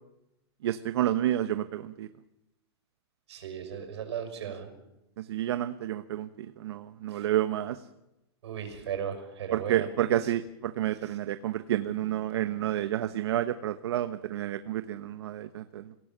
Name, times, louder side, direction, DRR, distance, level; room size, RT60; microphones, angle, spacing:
voice 1, 0.6-2.1 5.2-7.8 9.5-15.9, right 12 dB, 75° right, 10 dB, 1.0 m, -30 dB
voice 2, 3.3-4.7 7.1-7.3 8.4-10.3 11.0-11.2, right 8 dB, 90° right, 7 dB, 5.8 m, -37 dB
27.0 x 17.0 x 7.4 m, 0.93 s
supercardioid pair, 165°, 14 cm